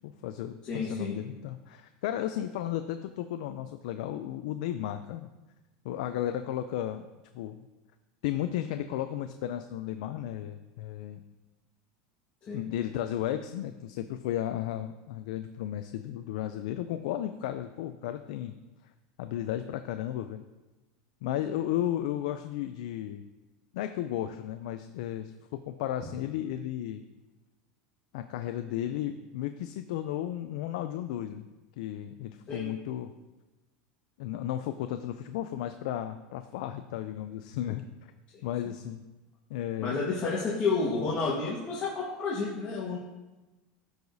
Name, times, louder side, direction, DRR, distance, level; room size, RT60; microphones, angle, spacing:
voice 1, 0.0-5.3 5.8-7.1 7.3-7.6 8.2-11.2 12.5-18.6 19.2-20.4 21.2-23.2 23.7-27.1 28.1-31.4 31.8-33.1 34.2-37.8 38.4-39.0 39.5-40.0, left 12 dB, 75° left, 9 dB, 0.4 m, -34 dB
voice 2, 0.6-1.2 12.5-12.6 32.5-32.7 39.8-43.0, left 4 dB, 35° left, -6 dB, 1.4 m, -30 dB
13.5 x 4.8 x 2.7 m, 1.1 s
supercardioid pair, 140°, 4 cm